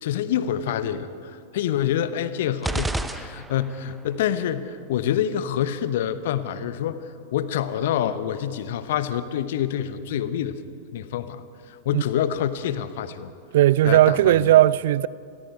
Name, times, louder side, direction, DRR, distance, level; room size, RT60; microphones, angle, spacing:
voice 1, 0.0-7.0 7.3-10.6 10.9-13.3 13.8-14.5, left 10 dB, 55° left, 1.0 m, -27 dB
sound 1, 2.6-3.9, right 2 dB, 5° right, 0.8 m, -29 dB
voice 2, 13.5-15.1, right 14 dB, 55° right, 0.5 m, -17 dB
29.5 x 22.0 x 4.7 m
figure-of-eight pair, 90°, 0 cm